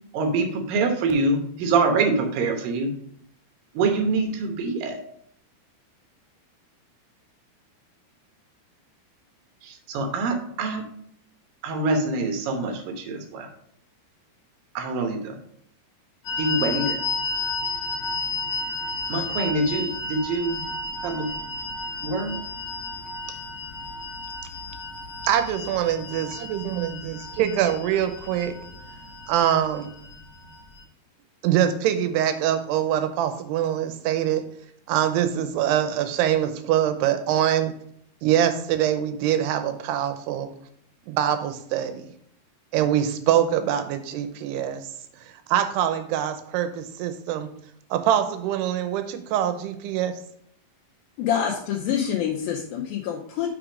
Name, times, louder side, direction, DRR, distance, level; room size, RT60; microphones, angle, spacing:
voice 1, 0.1-2.9 3.7-5.0 9.6-10.8 11.6-13.5 14.7-15.4 16.4-17.0 19.1-20.6 21.0-21.3 22.0-22.4, right 3 dB, 70° right, 4 dB, 2.5 m, -25 dB
sound 1, 16.2-30.8, left 3 dB, 60° left, 2.0 m, -33 dB
voice 2, 25.2-28.5 29.3-29.9 31.4-34.4 34.9-37.7 38.2-40.5 41.1-42.1 42.7-44.9 45.5-47.5 47.9-50.1, right 10 dB, 90° right, 9 dB, 2.8 m, -24 dB
voice 3, 51.2-53.6, left 8 dB, 80° left, 0 dB, 2.3 m, -26 dB
6.2 x 4.9 x 4.9 m, 0.67 s
omnidirectional pair, 4.6 m